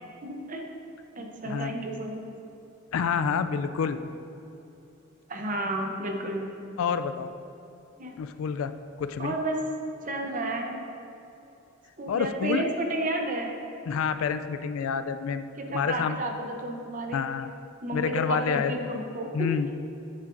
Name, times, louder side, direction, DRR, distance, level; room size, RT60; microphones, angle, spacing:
voice 1, 0.2-0.7 1.2-2.3 5.3-6.5 8.0-8.2 9.2-9.6 10.0-10.8 12.0-13.5 15.6-17.3 17.8-19.3, right 1 dB, 40° right, 2 dB, 0.7 m, -31 dB
voice 2, 2.9-4.0 6.8-7.3 8.2-8.7 9.0-9.3 12.1-12.6 13.9-16.2 17.1-17.5 17.9-18.7 19.3-19.7, left 6 dB, 80° left, 10 dB, 0.3 m, -28 dB
8.7 x 7.2 x 2.6 m, 2.7 s
head